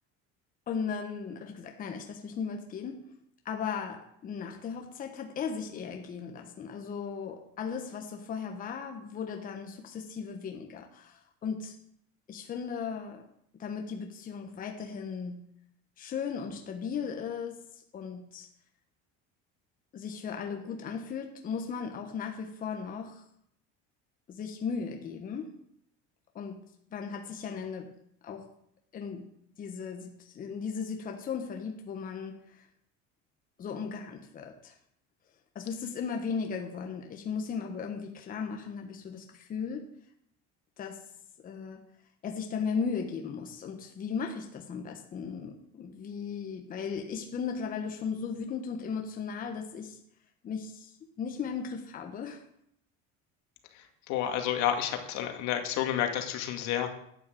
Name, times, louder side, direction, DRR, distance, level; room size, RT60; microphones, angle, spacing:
voice 1, 0.7-3.1 3.4-11.7 12.3-13.2 13.6-15.5 16.0-18.5 19.9-23.2 24.3-25.6 26.3-26.6 26.9-27.9 28.2-28.5 28.9-29.3 29.6-32.7 33.6-34.7 35.5-39.9 40.8-41.0 41.4-41.8 42.2-50.0 50.4-50.9 51.2-52.4, left 6 dB, 30° left, 3 dB, 1.2 m, -36 dB
voice 2, 53.7-56.9, left 10 dB, 70° left, 5 dB, 2.3 m, -30 dB
12.0 x 8.9 x 7.9 m, 0.73 s
cardioid pair, 170°, 29 cm